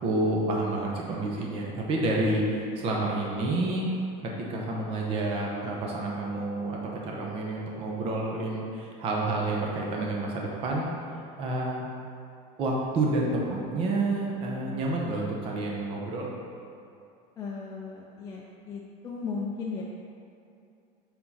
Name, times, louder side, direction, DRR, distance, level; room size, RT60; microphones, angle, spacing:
voice 1, 0.0-3.9 4.2-10.9 11.4-11.9 12.6-16.3, right 2 dB, 30° right, -2 dB, 0.8 m, -29 dB
voice 2, 17.4-19.8, left 4 dB, 20° left, -4 dB, 0.5 m, -36 dB
7.2 x 3.7 x 5.6 m, 2.6 s
cardioid pair, 170°, 18 cm